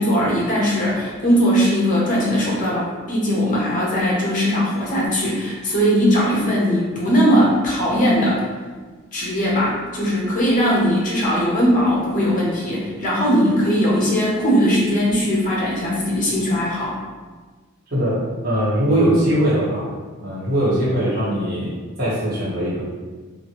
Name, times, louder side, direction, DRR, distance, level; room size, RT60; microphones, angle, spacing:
voice 1, 0.0-8.4 9.1-17.0, equal, 35° left, -5 dB, 0.7 m, -19 dB
voice 2, 17.9-19.9 20.2-22.8, right 1 dB, 45° right, -10 dB, 1.3 m, -21 dB
2.9 x 2.5 x 2.9 m, 1.4 s
head